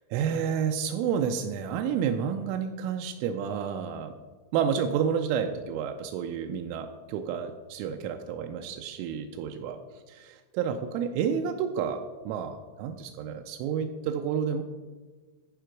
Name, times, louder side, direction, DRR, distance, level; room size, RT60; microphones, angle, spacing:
voice 1, 0.1-4.1 4.5-9.8 10.2-14.6, right 7 dB, 85° right, 5 dB, 3.1 m, -30 dB
14.5 x 4.9 x 4.6 m, 1.3 s
omnidirectional pair, 5.7 m